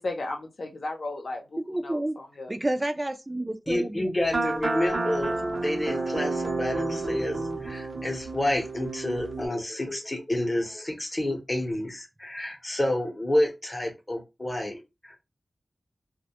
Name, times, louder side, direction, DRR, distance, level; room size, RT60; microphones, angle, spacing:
voice 1, 0.0-2.5, left 2 dB, 70° left, 0.6 m, -35 dB
voice 2, 1.7-2.2 2.5-4.1 5.4-5.5, right 1 dB, 25° right, 0.4 m, -30 dB
voice 3, 3.7-5.4 5.6-15.2, left 1 dB, 30° left, 0.7 m, -29 dB
sound 1, 4.2-9.5, right 2 dB, 65° right, 0.6 m, -30 dB
2.2 x 2.1 x 2.8 m
wide cardioid pair, 85°, 0 cm